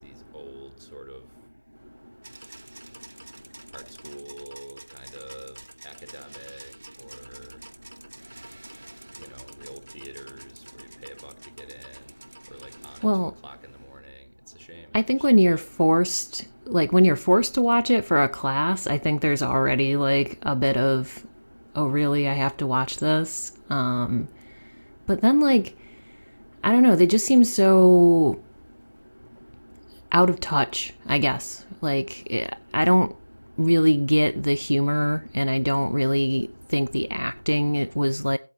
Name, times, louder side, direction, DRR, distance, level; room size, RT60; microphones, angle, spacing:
voice 1, 0.0-1.4 3.7-7.7 8.7-15.7, right 1 dB, 55° right, 1.1 m, -45 dB
sound 1, 2.2-13.1, right 2 dB, 30° right, 0.7 m, -48 dB
voice 2, 14.9-21.2 21.7-24.3 25.1-25.7 26.6-28.4 30.1-33.1 33.6-38.4, equal, 90° left, 0.4 m, -21 dB
16.0 x 8.2 x 3.0 m
figure-of-eight pair, 175°, 0 cm